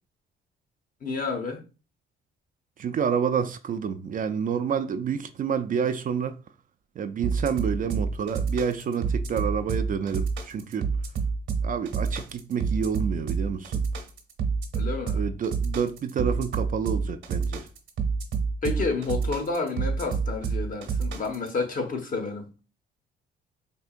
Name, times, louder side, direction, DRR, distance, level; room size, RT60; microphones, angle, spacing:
voice 1, 1.0-1.6 14.7-15.3 18.6-22.5, left 4 dB, 45° left, 0.9 m, -30 dB
voice 2, 2.8-6.4 7.0-10.9 11.6-13.7 15.1-17.6, right 7 dB, 45° right, 0.4 m, -28 dB
sound 1, 7.2-21.5, right 5 dB, 75° right, 0.9 m, -28 dB
4.5 x 2.7 x 2.4 m
cardioid pair, 90°, 20 cm